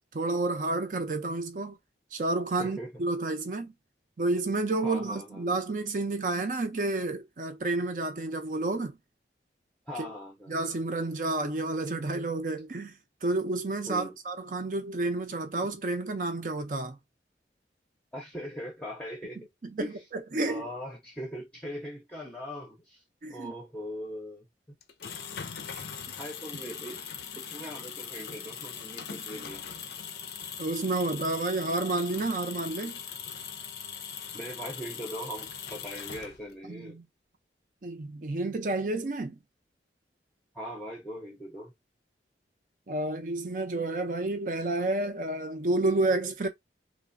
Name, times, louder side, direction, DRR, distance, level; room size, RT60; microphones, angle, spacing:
voice 1, 0.1-1.8 2.1-3.7 4.2-9.0 10.0-10.1 10.5-17.0 19.8-20.7 23.2-23.5 25.7-25.8 30.6-33.0 36.7-37.0 37.8-39.4 42.9-46.5, right 2 dB, 45° right, 0.5 m, -30 dB
voice 2, 2.6-2.9 4.8-5.5 9.9-10.6 13.9-14.2 18.1-19.5 19.8-19.9 20.4-24.5 26.1-27.0 27.3-29.9 34.3-37.0 40.5-41.7, equal, 5° left, 0.6 m, -40 dB
sound 1, 24.8-36.6, left 7 dB, 60° left, 0.5 m, -41 dB
3.2 x 2.0 x 2.5 m
head